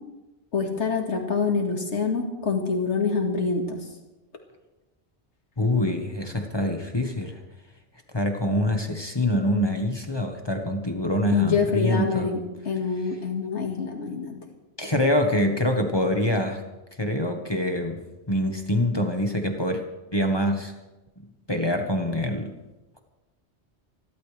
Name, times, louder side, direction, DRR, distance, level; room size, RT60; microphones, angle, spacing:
voice 1, 0.5-3.8 11.3-12.4 12.7-14.4, left 5 dB, 85° left, 3 dB, 2.2 m, -25 dB
voice 2, 5.6-7.4 8.1-12.3 14.8-16.6 17.0-18.0 18.3-19.8 20.1-20.7 21.2-22.6, left 1 dB, 25° left, 4 dB, 1.3 m, -25 dB
26.5 x 12.0 x 3.4 m, 1.1 s
omnidirectional pair, 1.2 m